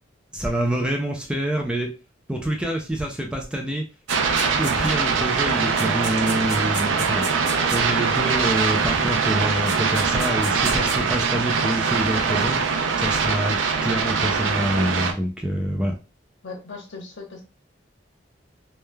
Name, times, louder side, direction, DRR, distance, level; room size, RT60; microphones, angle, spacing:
voice 1, 0.3-1.9 2.3-3.8 4.6-7.2 7.7-12.7 13.0-15.9, equal, 5° right, 2 dB, 0.3 m, -26 dB
sound 1, 4.1-5.1 5.5-8.2 9.3-9.4 9.7-11.0, right 3 dB, 65° right, 1.3 m, -34 dB
sound 2, 4.1-15.1, right 5 dB, 85° right, 0.5 m, -22 dB
voice 2, 16.4-17.4, left 4 dB, 80° left, 1 dB, 1.0 m, -38 dB
3.1 x 2.2 x 2.2 m, 0.31 s
head